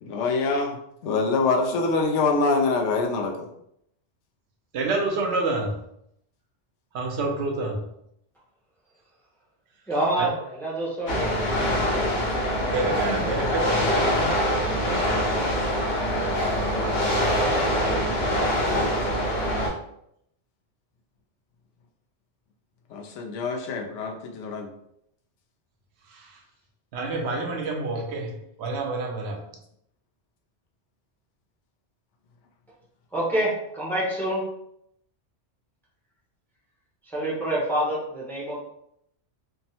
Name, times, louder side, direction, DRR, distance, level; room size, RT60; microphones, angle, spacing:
voice 1, 0.0-0.8 1.0-3.5 22.9-24.7, left 3 dB, 85° left, 2 dB, 0.9 m, -25 dB
voice 2, 4.7-5.8 6.9-7.9 10.2-10.3 12.7-14.3 26.1-26.4 26.9-29.4, right 3 dB, 70° right, 2 dB, 0.8 m, -28 dB
voice 3, 9.9-11.3 33.1-34.5 37.1-38.6, right 1 dB, ahead, -5 dB, 0.5 m, -26 dB
sound 1, 11.1-19.7, equal, 65° left, 1.3 m, -24 dB
3.4 x 2.0 x 2.7 m, 0.76 s
omnidirectional pair, 1.2 m